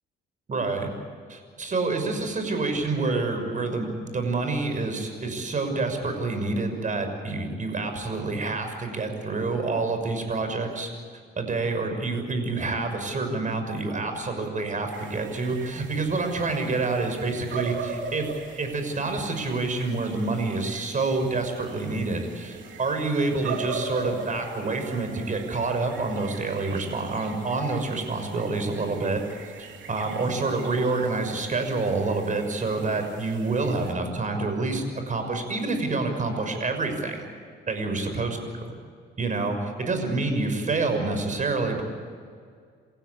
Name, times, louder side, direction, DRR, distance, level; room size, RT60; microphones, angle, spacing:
voice 1, 0.5-0.9 1.3-10.9 11.4-18.3 18.6-29.2 29.6-37.3 37.7-38.7 39.2-41.8, right 3 dB, 40° right, 6 dB, 6.3 m, -27 dB
sound 1, 14.9-33.9, right 5 dB, 75° right, 2.9 m, -40 dB
29.0 x 16.0 x 8.7 m, 2.1 s
cardioid pair, 90°, 20 cm